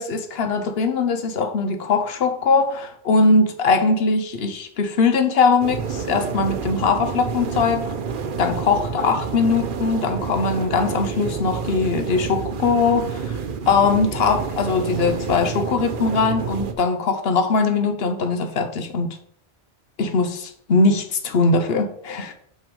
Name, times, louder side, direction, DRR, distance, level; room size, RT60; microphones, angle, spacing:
voice 1, 0.0-7.8 8.4-13.4 13.7-19.2 20.0-22.3, left 4 dB, 70° left, 1.1 m, -21 dB
sound 1, 5.6-16.7, right 6 dB, 60° right, 0.8 m, -29 dB
6.0 x 5.5 x 5.3 m
omnidirectional pair, 1.1 m